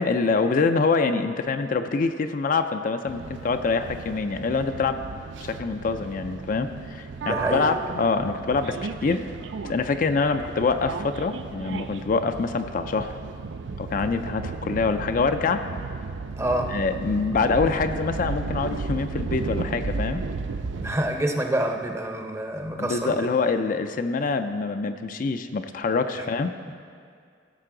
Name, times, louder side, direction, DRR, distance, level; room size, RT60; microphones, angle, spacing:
voice 1, 0.0-5.0 5.4-9.2 9.6-13.1 13.8-15.6 16.7-20.2 22.8-26.5, left 4 dB, 50° left, 8 dB, 0.4 m, -25 dB
sound 1, 3.1-21.0, right 4 dB, 80° right, 0.4 m, -34 dB
voice 2, 7.2-7.7 16.4-16.7 20.8-23.1, right 1 dB, 15° right, 3 dB, 0.7 m, -27 dB
15.5 x 6.6 x 3.8 m, 2.2 s
head